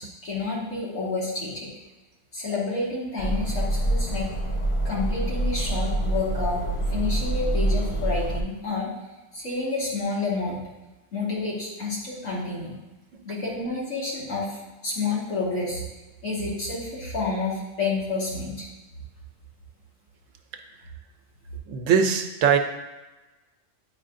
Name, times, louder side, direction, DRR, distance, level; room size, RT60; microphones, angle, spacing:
voice 1, 0.0-1.7 2.3-4.3 4.8-8.9 9.3-10.7 11.1-12.7 13.2-15.8 16.2-18.7, left 3 dB, 80° left, -6 dB, 2.2 m, -29 dB
sound 1, 3.2-8.4, right 1 dB, 40° left, 0.4 m, -26 dB
voice 2, 21.7-22.6, right 7 dB, 75° right, 6 dB, 1.0 m, -21 dB
8.8 x 4.8 x 2.6 m, 1.1 s
omnidirectional pair, 1.3 m